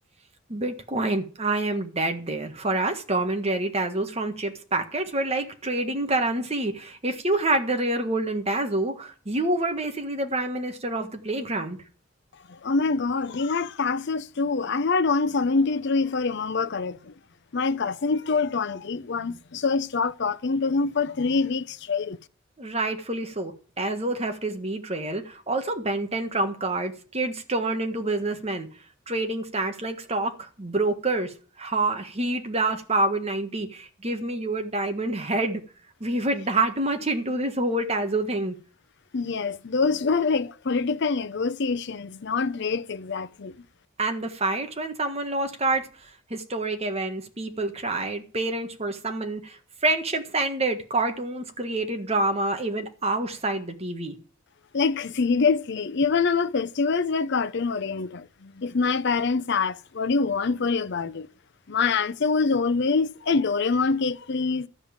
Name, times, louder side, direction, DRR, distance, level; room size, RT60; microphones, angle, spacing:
voice 1, 0.5-11.8 22.6-28.7 29.1-35.6 36.0-38.5 44.0-54.2, right 2 dB, 30° right, 1.5 m, -27 dB
voice 2, 12.5-17.1 17.5-22.2 39.1-43.5 54.7-61.3 61.7-64.7, left 4 dB, 55° left, 0.6 m, -25 dB
13.0 x 5.5 x 8.8 m
head